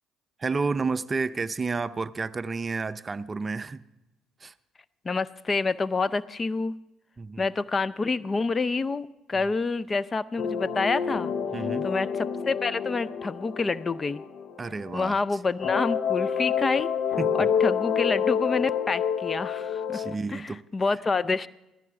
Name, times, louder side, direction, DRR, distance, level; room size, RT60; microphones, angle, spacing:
voice 1, 0.4-3.8 4.4-4.5 7.2-7.5 9.3-9.4 11.5-11.9 14.6-15.2 17.2-17.5 19.9-20.6, right 4 dB, 30° right, 0.5 m, -31 dB
voice 2, 5.0-6.8 7.4-11.3 11.8-14.2 14.9-16.9 17.4-21.5, left 4 dB, 30° left, 0.5 m, -28 dB
sound 1, 10.4-15.2 15.6-20.1, left 7 dB, 60° left, 0.8 m, -28 dB
16.0 x 14.0 x 4.8 m
hypercardioid pair, 60°, 0 cm